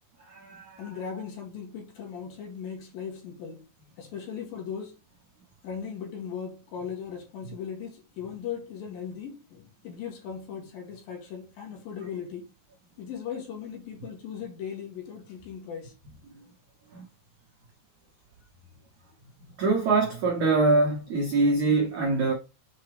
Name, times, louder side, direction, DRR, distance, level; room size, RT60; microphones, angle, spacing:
voice 1, 0.3-0.8 16.9-17.0 19.6-22.3, right 3 dB, 85° right, 1.6 m, -24 dB
voice 2, 0.8-3.6 4.0-5.0 5.6-12.5 13.0-15.9, left 7 dB, 60° left, 3.1 m, -38 dB
7.2 x 4.7 x 3.3 m
omnidirectional pair, 5.2 m